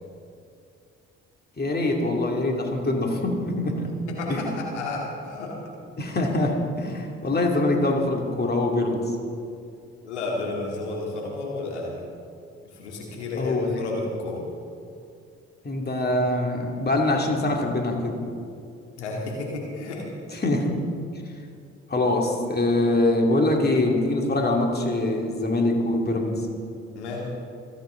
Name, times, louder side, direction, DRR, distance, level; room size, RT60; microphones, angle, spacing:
voice 1, 1.6-3.9 4.3-4.5 6.0-9.0 13.4-13.8 15.6-18.2 20.3-20.7 21.9-26.4, left 2 dB, 30° left, 1 dB, 2.7 m, -24 dB
voice 2, 3.9-5.6 10.0-12.0 12.6-14.4 19.0-20.1 26.9-27.2, left 2 dB, 85° left, -2 dB, 2.4 m, -32 dB
27.0 x 9.7 x 3.9 m, 2.4 s
hypercardioid pair, 45°, 33 cm